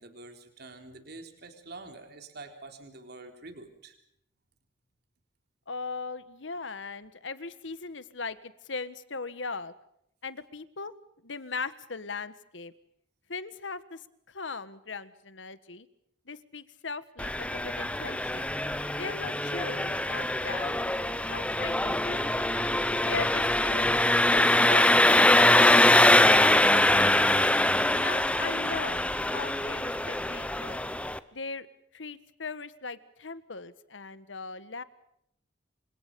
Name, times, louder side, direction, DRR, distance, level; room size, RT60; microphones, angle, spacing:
voice 1, 0.0-4.0, right 3 dB, 60° right, 5 dB, 3.6 m, -46 dB
voice 2, 5.7-9.7 10.2-10.9 11.2-12.7 13.3-15.9 16.3-18.5 18.9-20.8 21.3-22.6 23.0-25.8 26.2-27.5 28.0-29.0 29.3-30.8 31.3-31.7 31.9-34.8, left 4 dB, 85° left, 14 dB, 1.5 m, -39 dB
Engine, 17.2-31.2, left 1 dB, 5° left, 0.9 m, -23 dB
28.0 x 26.5 x 5.4 m, 0.75 s
head